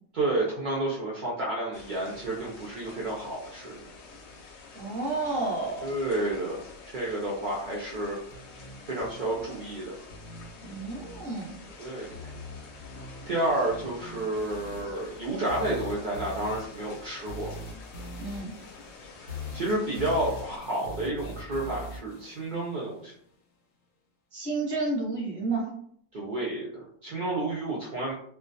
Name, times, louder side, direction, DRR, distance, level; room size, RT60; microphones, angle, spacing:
voice 1, 0.1-3.9 5.8-6.6 6.9-8.2 8.9-9.9 11.8-12.3 13.3-17.5 19.2-23.1 26.1-28.1, right 1 dB, 65° right, -4 dB, 0.5 m, -30 dB
heavy rain, 1.7-20.6, left 3 dB, 65° left, 0.7 m, -48 dB
voice 2, 4.7-5.9 10.6-11.6 18.2-18.5 24.3-25.7, right 3 dB, 25° right, -3 dB, 0.6 m, -31 dB
sound 1, 8.3-23.3, left 1 dB, 90° left, 1.0 m, -43 dB
2.3 x 2.2 x 2.6 m, 0.63 s
omnidirectional pair, 1.4 m